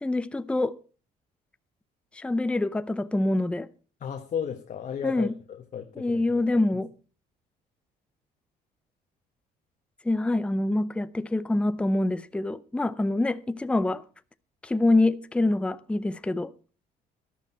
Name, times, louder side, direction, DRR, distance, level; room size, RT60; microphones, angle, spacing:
voice 1, 0.0-0.8 2.1-3.7 5.0-5.3 6.0-6.9 10.0-14.0 14.6-16.5, left 2 dB, 5° left, 0.6 m, -25 dB
voice 2, 4.0-6.6, left 8 dB, 45° left, 1.3 m, -34 dB
13.5 x 11.5 x 4.4 m
cardioid pair, 110°, 17 cm